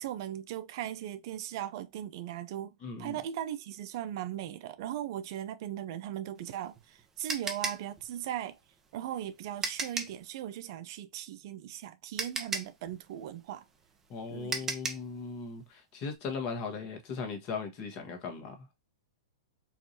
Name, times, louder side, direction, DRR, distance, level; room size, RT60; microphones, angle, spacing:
voice 1, 0.0-8.6 8.9-13.6 14.3-14.7, right 11 dB, 55° right, 0.5 m, -38 dB
voice 2, 2.8-3.2 14.1-18.6, left 5 dB, 40° left, 1.4 m, -38 dB
sound 1, 6.4-10.2 11.7-11.8 12.2-15.1, right 4 dB, 15° right, 0.9 m, -36 dB
4.7 x 2.6 x 2.8 m
hypercardioid pair, 110°, 3 cm